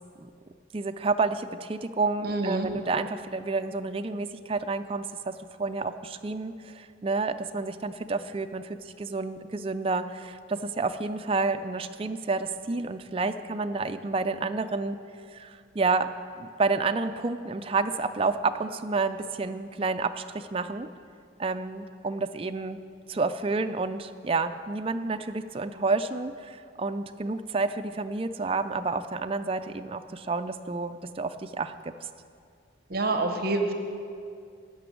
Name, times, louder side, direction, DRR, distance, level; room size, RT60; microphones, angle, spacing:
voice 1, 0.7-5.3 5.6-15.0 15.3-16.1 16.4-20.9 21.4-22.8 23.1-31.9, right 3 dB, 30° right, 9 dB, 0.4 m, -30 dB
voice 2, 2.2-2.7 32.9-33.7, right 2 dB, 50° right, 6 dB, 0.9 m, -27 dB
12.5 x 6.1 x 9.2 m, 2.4 s
head